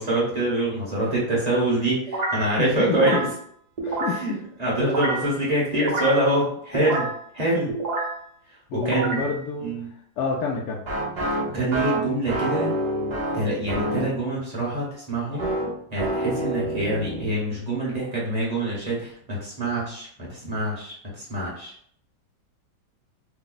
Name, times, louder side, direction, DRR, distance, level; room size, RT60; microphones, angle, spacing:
voice 1, 0.0-3.2 4.1-4.3 4.6-7.1 7.3-7.7 8.8-9.3 9.6-9.9 11.5-12.7 13.3-15.5 15.9-21.7, right 1 dB, 30° right, -6 dB, 0.8 m, -25 dB
sound 1, 2.1-2.5 2.9-3.4 3.8-4.3 4.8-5.3 5.7-6.2 6.7-7.2 7.7-8.2 8.7-9.4 10.8-14.1 15.4-17.3, right 1 dB, 55° right, 0.4 m, -27 dB
voice 2, 2.6-3.2 3.8-4.4 8.7-9.7 10.2-10.8, left 4 dB, 70° left, -2 dB, 1.0 m, -28 dB
3.3 x 2.0 x 3.8 m, 0.64 s
omnidirectional pair, 2.1 m